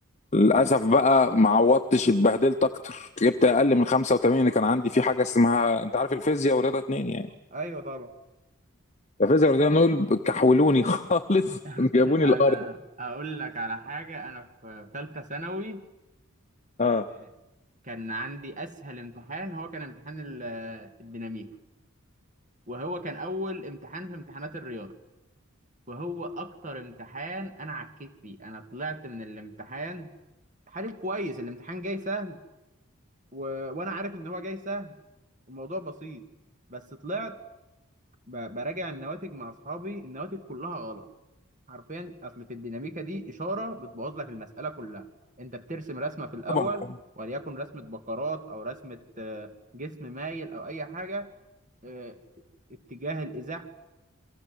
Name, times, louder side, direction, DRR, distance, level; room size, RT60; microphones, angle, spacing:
voice 1, 0.3-7.3 9.2-12.6 16.8-17.1 46.5-46.7, left 2 dB, 35° left, 7 dB, 0.9 m, -22 dB
voice 2, 7.5-8.1 11.6-15.8 16.8-17.0 17.8-21.5 22.7-24.9 25.9-30.1 30.7-32.4 33.3-35.0 35.5-36.2 36.7-37.4 38.3-41.1 41.7-45.1 45.4-46.9 47.2-51.3 51.8-52.2 52.7-53.6, right 1 dB, 35° right, 7 dB, 2.6 m, -36 dB
29.5 x 23.5 x 8.1 m, 0.98 s
head